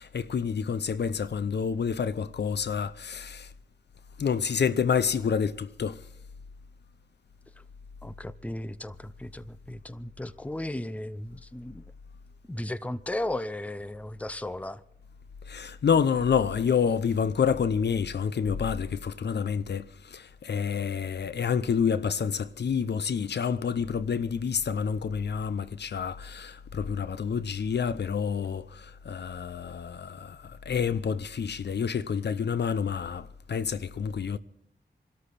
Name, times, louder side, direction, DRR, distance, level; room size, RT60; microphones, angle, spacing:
voice 1, 0.0-3.5 4.2-6.0 15.5-34.4, left 6 dB, 65° left, 0.7 m, -28 dB
voice 2, 8.0-11.8 12.5-14.8, left 1 dB, 5° left, 0.7 m, -35 dB
26.0 x 13.0 x 4.2 m
wide cardioid pair, 80°, 19 cm